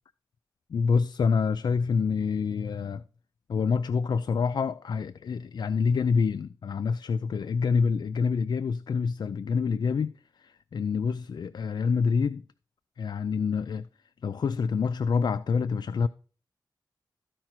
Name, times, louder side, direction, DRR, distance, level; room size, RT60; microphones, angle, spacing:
voice 1, 0.7-3.0 3.5-10.1 10.4-12.4 13.0-13.9 14.2-16.1, left 5 dB, 65° left, 0.4 m, -27 dB
13.5 x 4.8 x 4.5 m
wide cardioid pair, 125°, 8 cm